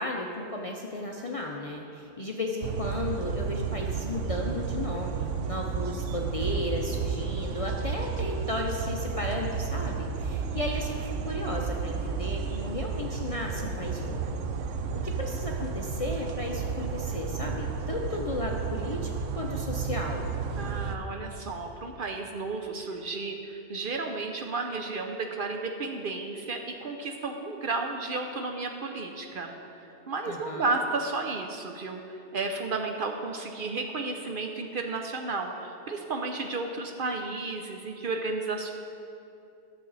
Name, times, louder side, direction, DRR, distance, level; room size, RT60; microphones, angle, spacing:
voice 1, 0.0-14.4 14.9-19.1 19.4-20.2 30.3-30.7, left 2 dB, 40° left, -1 dB, 0.5 m, -34 dB
sound 1, 2.6-21.0, right 6 dB, 85° right, 0.9 m, -32 dB
voice 2, 20.5-29.5 30.1-32.0 32.3-38.7, right 3 dB, 55° right, 3 dB, 0.7 m, -32 dB
12.0 x 6.8 x 4.0 m, 2.7 s
omnidirectional pair, 1.2 m